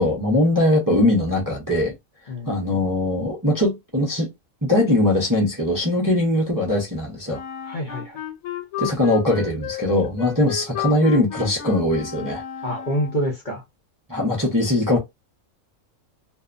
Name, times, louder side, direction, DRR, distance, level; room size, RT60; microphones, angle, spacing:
voice 1, 0.0-1.9 2.5-4.3 4.6-7.4 8.8-12.4 14.1-15.0, left 1 dB, 20° right, 0.6 m, -21 dB
voice 2, 2.3-2.6 7.7-8.2 12.6-13.6, equal, 45° left, 0.8 m, -27 dB
Wind instrument woodwind instrument, 7.3-13.3, left 10 dB, 90° left, 1.1 m, -33 dB
2.6 x 2.1 x 2.4 m
omnidirectional pair, 1.4 m